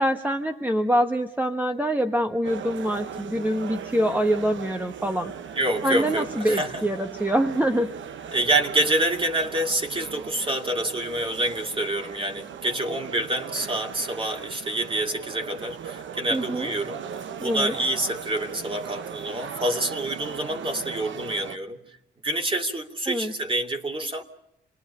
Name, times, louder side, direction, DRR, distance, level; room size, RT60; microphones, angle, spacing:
voice 1, 0.0-5.3 5.8-7.9 16.3-16.7 17.4-17.7 23.1-23.3, equal, 10° right, 5 dB, 1.2 m, -25 dB
sound 1, 2.4-21.6, right 7 dB, 65° right, 1.0 m, -38 dB
voice 2, 5.5-6.8 8.3-17.0 17.4-21.8 22.2-24.2, right 1 dB, 25° right, 3 dB, 2.7 m, -27 dB
28.0 x 21.0 x 5.7 m, 0.82 s
cardioid pair, 95°, 21 cm